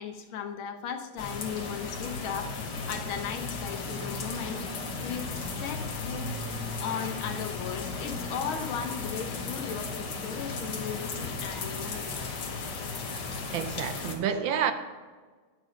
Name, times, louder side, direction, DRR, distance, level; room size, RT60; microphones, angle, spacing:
voice 1, 0.0-2.5 2.9-4.6 5.0-5.3 5.6-6.3 6.8-12.3, left 7 dB, 75° left, 6 dB, 1.7 m, -36 dB
sound 1, 1.2-14.1, left 4 dB, 60° left, 1.7 m, -35 dB
voice 2, 13.5-14.7, right 8 dB, 70° right, 9 dB, 1.4 m, -29 dB
10.5 x 6.5 x 5.1 m, 1.4 s
omnidirectional pair, 2.3 m